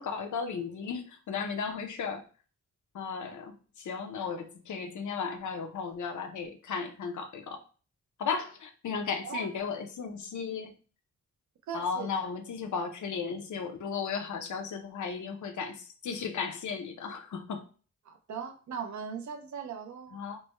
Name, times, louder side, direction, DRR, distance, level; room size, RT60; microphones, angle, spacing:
voice 1, 0.0-2.2 2.9-7.6 8.2-10.7 11.7-17.7 20.1-20.4, left 5 dB, 85° left, 5 dB, 0.6 m, -35 dB
voice 2, 11.7-12.1 18.1-20.2, right 7 dB, 75° right, 5 dB, 0.6 m, -39 dB
3.3 x 2.1 x 4.2 m, 0.38 s
wide cardioid pair, 145°, 29 cm